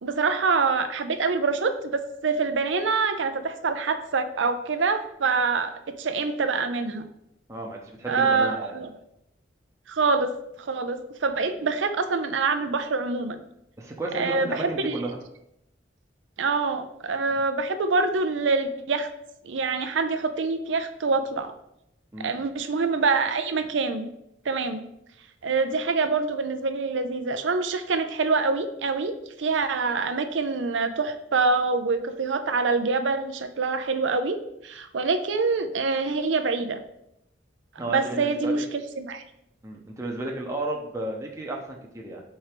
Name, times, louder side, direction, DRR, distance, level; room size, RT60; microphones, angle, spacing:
voice 1, 0.0-7.1 8.1-8.9 9.9-13.4 14.1-15.0 16.4-19.1 19.4-21.5 22.2-24.1 24.5-24.8 25.4-34.4 34.6-36.8 37.8-39.2, right 4 dB, 85° right, 9 dB, 0.6 m, -25 dB
voice 2, 7.5-8.8 13.8-15.2 17.3-17.4 22.1-22.4 37.8-38.6 39.6-42.2, right 2 dB, 15° right, -1 dB, 0.7 m, -33 dB
4.5 x 4.4 x 5.0 m, 0.79 s
head